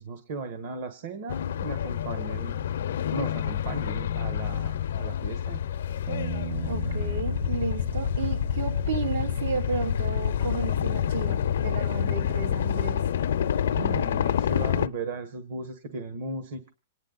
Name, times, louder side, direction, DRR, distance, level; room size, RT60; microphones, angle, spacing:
voice 1, 0.0-2.7 3.1-5.6 13.8-16.7, right 3 dB, 55° right, 10 dB, 1.4 m, -36 dB
sound 1, 1.3-14.9, left 9 dB, 80° left, 0.6 m, -28 dB
Bass guitar, 6.1-12.3, right 10 dB, 25° right, 0.7 m, -40 dB
voice 2, 6.7-13.0, right 5 dB, 90° right, 3 dB, 2.9 m, -33 dB
27.0 x 9.7 x 4.0 m, 0.38 s
supercardioid pair, 160°, 0 cm